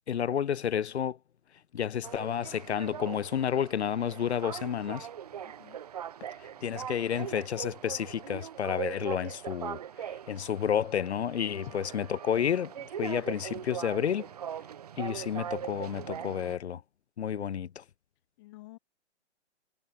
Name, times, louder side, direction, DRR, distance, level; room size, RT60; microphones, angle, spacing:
voice 1, 0.1-1.2 1.7-5.1 6.6-9.8 10.3-14.3 15.0-16.8 17.2-17.8, left 8 dB, 70° left, 0.9 m, -30 dB
sound 1, 2.0-16.5, right 9 dB, 35° right, 0.9 m, -41 dB
voice 2, 5.4-5.8 11.6-11.8 18.4-18.8, left 20 dB, 20° left, 2.5 m, -49 dB
hypercardioid pair, 170°, 34 cm